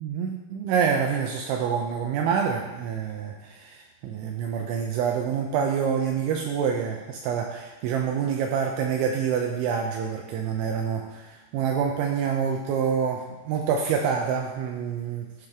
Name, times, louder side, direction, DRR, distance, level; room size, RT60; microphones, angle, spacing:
voice 1, 0.0-15.5, right 7 dB, 80° right, 2 dB, 2.8 m, -27 dB
13.0 x 5.1 x 3.6 m, 1.1 s
omnidirectional pair, 5.8 m